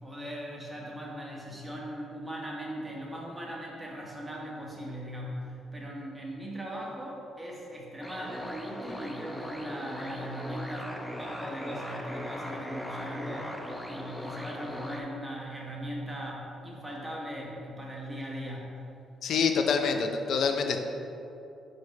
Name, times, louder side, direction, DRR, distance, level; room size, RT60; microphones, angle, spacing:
voice 1, 0.0-18.8, equal, 15° right, -3 dB, 1.4 m, -39 dB
sound 1, 8.0-15.0, equal, 5° left, 0.7 m, -39 dB
voice 2, 19.2-20.8, left 5 dB, 70° left, 5 dB, 0.5 m, -26 dB
4.7 x 4.6 x 5.2 m, 2.9 s
cardioid pair, 90°, 0 cm